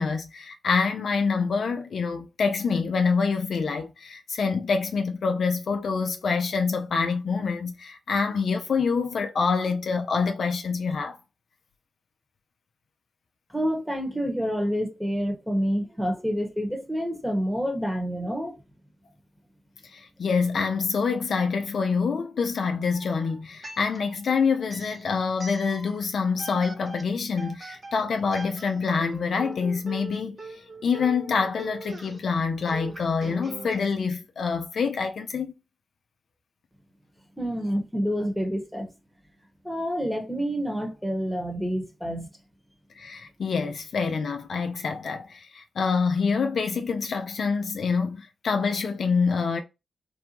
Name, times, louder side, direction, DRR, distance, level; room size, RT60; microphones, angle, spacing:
voice 1, 0.0-11.2 19.8-35.5 43.0-49.6, left 5 dB, 70° left, 0.4 m, -26 dB
voice 2, 13.5-18.6 37.4-38.9 39.6-42.3, equal, 5° right, 1.1 m, -28 dB
sound 1, 22.9-24.2 24.6-26.0 26.4-33.8, right 3 dB, 40° right, 0.8 m, -42 dB
2.6 x 2.2 x 2.8 m
supercardioid pair, 40°, 0 cm